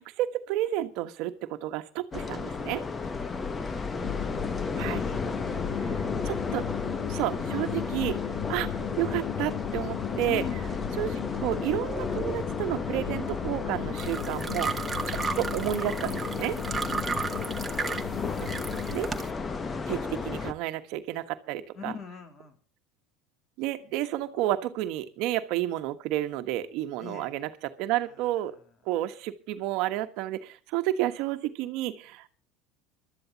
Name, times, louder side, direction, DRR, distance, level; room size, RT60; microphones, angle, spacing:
voice 1, 0.0-1.3 1.6-2.8 4.8-5.0 6.2-6.6 7.1-8.1 8.5-8.7 9.0-10.4 11.0-14.7 15.1-16.5 18.4-19.1 19.9-21.9 23.6-28.5 28.9-32.3, right 14 dB, 65° right, 8 dB, 1.3 m, -31 dB
sound 1, 2.1-20.5, left 4 dB, 25° left, 1.1 m, -33 dB
sound 2, 4.0-19.0, left 14 dB, 75° left, 1.0 m, -37 dB
voice 2, 10.3-10.7 15.2-15.5 21.7-22.6 27.0-27.3 28.1-28.6, left 6 dB, 40° left, 7 dB, 3.1 m, -44 dB
sound 3, 14.0-19.3, right 5 dB, 15° right, 1.4 m, -34 dB
23.5 x 12.5 x 2.9 m, 0.38 s
supercardioid pair, 115°, 0 cm